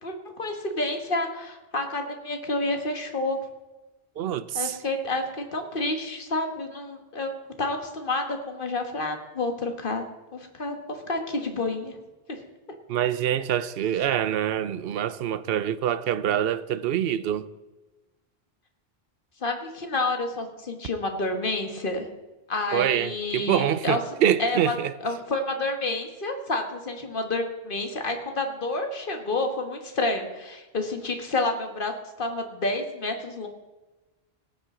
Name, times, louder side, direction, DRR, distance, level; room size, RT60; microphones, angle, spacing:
voice 1, 0.0-3.4 4.5-10.0 10.3-11.9 12.3-12.4 19.4-22.1 22.5-24.0 24.4-24.7 25.0-31.9 32.2-33.5, left 2 dB, 60° left, 1.7 m, -29 dB
voice 2, 4.2-4.8 12.9-17.5 22.7-24.9, right 10 dB, 70° right, 0.8 m, -25 dB
17.5 x 8.9 x 3.8 m
omnidirectional pair, 1.0 m